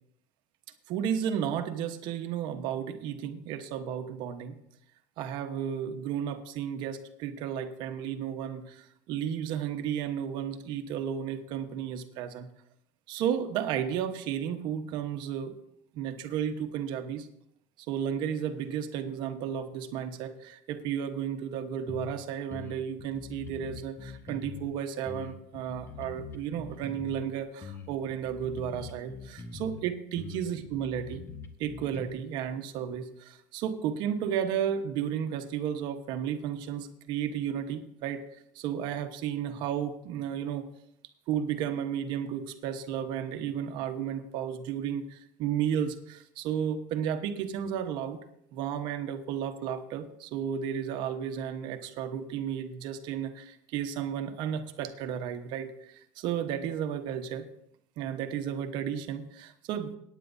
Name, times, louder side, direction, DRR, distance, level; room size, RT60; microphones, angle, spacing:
voice 1, 0.9-4.5 5.2-12.5 13.1-15.5 15.9-17.3 17.9-31.2 31.6-38.2 38.5-40.7 41.3-48.2 48.5-57.5 58.0-60.0, right 9 dB, 60° right, 7 dB, 1.2 m, -33 dB
sound 1, 21.9-22.2 22.5-24.7 25.1-27.3 27.6-29.8 30.2-32.1, left 5 dB, 30° left, 1.1 m, -43 dB
18.5 x 9.4 x 2.7 m, 0.74 s
supercardioid pair, 115°, 9 cm